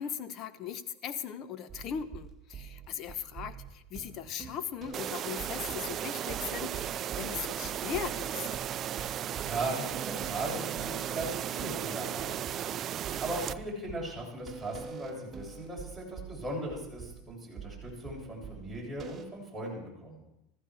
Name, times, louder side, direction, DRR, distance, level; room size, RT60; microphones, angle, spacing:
voice 1, 0.0-8.5, left 8 dB, 45° left, 13 dB, 1.0 m, -39 dB
sound 1, 1.7-19.2, right 7 dB, 25° right, 2.0 m, -46 dB
sound 2, 4.9-13.5, right 10 dB, 40° right, 0.4 m, -35 dB
voice 2, 9.4-12.5 13.2-20.2, right 1 dB, ahead, -2 dB, 7.5 m, -38 dB
15.0 x 15.0 x 4.8 m, 0.86 s
hypercardioid pair, 105°, 0 cm